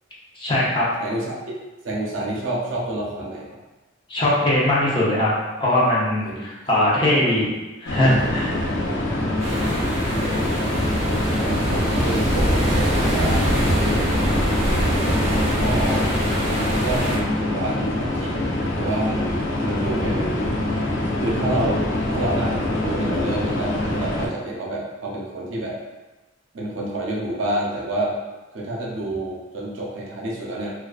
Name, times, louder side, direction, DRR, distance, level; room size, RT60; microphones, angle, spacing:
voice 1, 0.4-0.8 4.1-5.3 5.6-7.5 7.8-8.6, left 1 dB, 25° left, -7 dB, 0.6 m, -20 dB
voice 2, 1.0-1.4 1.8-3.5 6.2-6.4 10.2-10.9 11.3-13.8 15.3-16.0 16.6-18.4 18.8-20.5 21.2-25.8 26.5-28.1 28.5-30.7, right 1 dB, 75° right, -3 dB, 0.5 m, -28 dB
sound 1, 7.9-24.3, left 1 dB, 75° left, 0.4 m, -25 dB
sound 2, 9.4-17.2, equal, 35° right, 0.6 m, -23 dB
2.4 x 2.2 x 2.3 m, 1.1 s
head